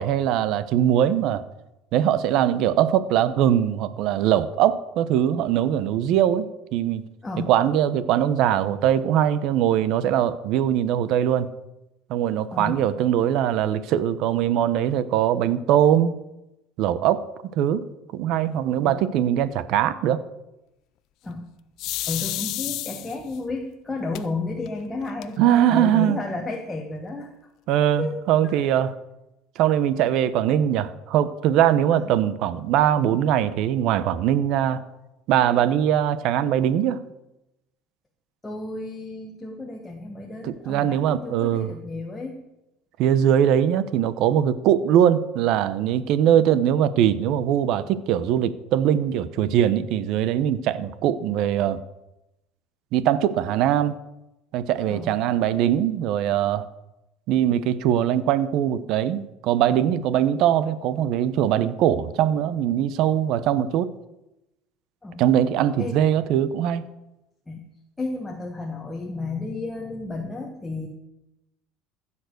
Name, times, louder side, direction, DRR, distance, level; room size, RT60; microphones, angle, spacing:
voice 1, 0.0-1.4 1.9-7.0 7.5-11.5 12.1-16.1 16.8-17.3 17.6-17.8 18.1-20.2 25.4-26.2 27.7-28.9 29.6-34.8 35.3-37.0 40.4-41.7 43.0-51.8 52.9-54.0 54.5-56.7 57.3-63.9 65.2-66.8, right 10 dB, 60° right, 15 dB, 0.8 m, -21 dB
sound 1, 21.8-23.4 24.1-24.2 24.7-24.8 25.0-25.6, left 16 dB, 60° left, 0.6 m, -30 dB
voice 2, 22.1-27.3 28.0-28.1 28.4-28.6 31.9-32.2 38.4-42.4 46.1-46.4 54.9-55.2 65.0-65.2 65.8-66.0 67.5-67.6 68.0-70.9, left 3 dB, 10° left, 1 dB, 1.3 m, -32 dB
15.0 x 7.1 x 6.6 m, 0.94 s
cardioid pair, 130°, 0 cm